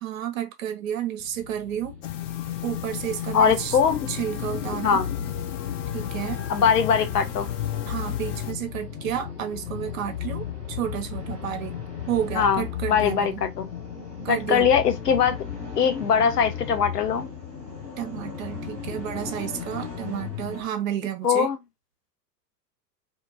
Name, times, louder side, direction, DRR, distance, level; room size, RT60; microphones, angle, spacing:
voice 1, 0.0-1.9 2.6-3.8 4.1-5.0 5.9-6.4 7.9-11.7 12.1-13.4 14.2-14.7 18.0-21.5, right 10 dB, 50° right, 0.9 m, -31 dB
sound 1, 1.2-20.7, left 8 dB, 5° left, 0.3 m, -35 dB
sound 2, 2.0-8.5, left 13 dB, 50° left, 0.6 m, -35 dB
voice 2, 3.3-4.1 4.8-5.1 6.5-7.5 12.4-12.6 12.9-13.7 14.3-15.4 15.8-17.3 21.2-21.6, left 7 dB, 70° left, 0.9 m, -21 dB
2.7 x 2.7 x 2.4 m
figure-of-eight pair, 95°, 50 cm